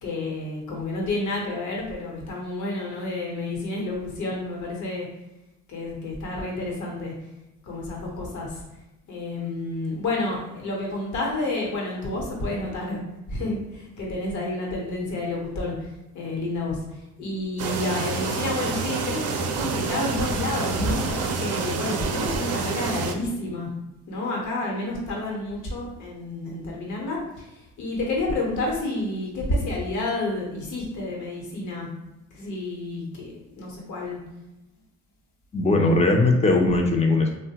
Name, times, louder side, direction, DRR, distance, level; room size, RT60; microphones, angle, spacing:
voice 1, 0.0-5.1 5.7-7.1 7.7-8.6 9.1-13.0 13.3-15.9 16.1-16.8 17.2-23.7 24.1-27.5 27.8-31.9 32.3-34.2, left 2 dB, 75° left, -2 dB, 0.9 m, -30 dB
sound 1, 17.6-23.1, right 4 dB, 55° right, 0.5 m, -28 dB
voice 2, 35.5-37.4, left 2 dB, 20° left, 2 dB, 0.5 m, -19 dB
3.1 x 2.1 x 2.8 m, 0.96 s
cardioid pair, 90°, 30 cm